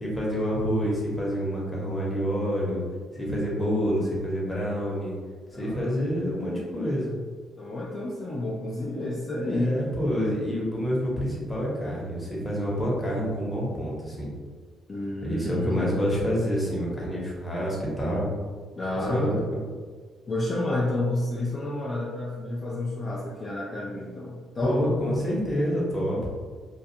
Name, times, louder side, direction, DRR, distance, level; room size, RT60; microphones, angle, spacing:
voice 1, 0.0-2.8 3.1-5.2 5.5-7.1 8.9-9.0 9.4-14.3 15.2-18.3 19.1-19.6 24.6-26.3, equal, 15° left, -5 dB, 0.9 m, -27 dB
voice 2, 5.5-6.0 7.6-9.8 14.9-15.8 18.8-19.4 20.3-25.0, left 2 dB, 35° left, -5 dB, 0.4 m, -30 dB
2.3 x 2.3 x 2.8 m, 1.5 s
cardioid pair, 90°, 0 cm